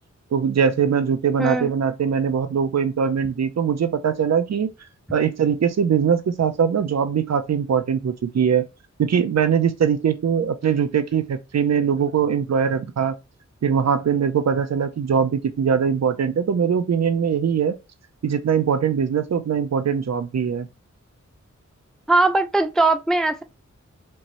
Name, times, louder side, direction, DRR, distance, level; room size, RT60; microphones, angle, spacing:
voice 1, 0.3-4.7 5.1-8.6 9.0-13.2 13.6-17.7 18.2-20.7, right 7 dB, 60° right, 0.5 m, -21 dB
voice 2, 22.1-23.4, right 2 dB, ahead, 0.3 m, -19 dB
4.5 x 3.0 x 2.6 m
wide cardioid pair, 95°, 29 cm